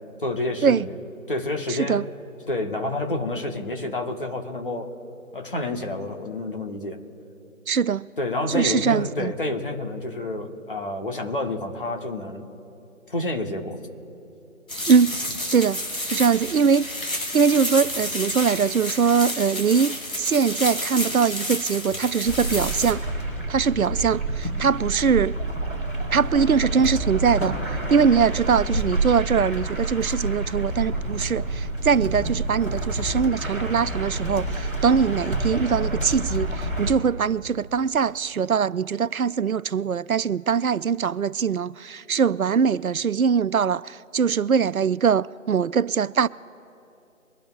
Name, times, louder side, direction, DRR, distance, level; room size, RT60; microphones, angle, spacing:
voice 1, 0.2-1.0 1.3-2.0 2.5-4.9 5.3-7.0 8.2-12.5 13.1-13.8, left 2 dB, 40° left, 1.6 m, -29 dB
voice 2, 1.7-2.0 7.7-8.1 8.5-9.3 14.9-15.1 15.5-15.8 16.1-23.0 23.5-25.4 26.1-27.5 27.9-46.3, right 6 dB, 80° right, 0.6 m, -22 dB
sound 1, 14.7-22.9, left 1 dB, 75° left, 3.3 m, -30 dB
sound 2, 22.2-36.9, right 2 dB, ahead, 1.7 m, -28 dB
23.5 x 12.0 x 2.6 m
figure-of-eight pair, 160°, 42 cm